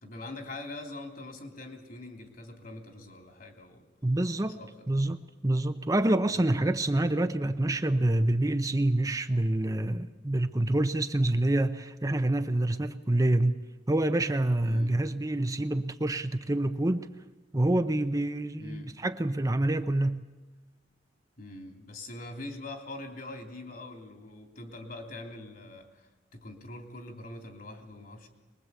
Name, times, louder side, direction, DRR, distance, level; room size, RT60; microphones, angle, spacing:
voice 1, 0.0-3.9 4.4-4.9 6.3-6.6 14.6-15.0 18.6-18.9 21.4-28.3, left 2 dB, 50° left, 5 dB, 3.2 m, -43 dB
voice 2, 4.0-4.6 4.9-13.6 13.9-17.1 17.5-20.2, right 1 dB, 20° right, 8 dB, 0.8 m, -27 dB
23.0 x 21.0 x 8.2 m, 1.1 s
head